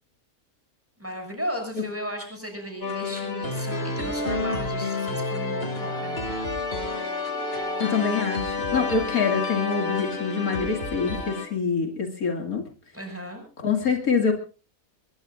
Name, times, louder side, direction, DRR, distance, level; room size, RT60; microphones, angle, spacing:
voice 1, 1.0-6.4 12.9-13.4, equal, 10° right, 3 dB, 6.7 m, -35 dB
sound 1, 2.8-11.5, left 3 dB, 40° left, 2.6 m, -29 dB
voice 2, 7.8-12.6 13.6-14.3, left 5 dB, 75° left, 4 dB, 2.8 m, -25 dB
22.5 x 21.5 x 2.5 m, 0.34 s
omnidirectional pair, 1.5 m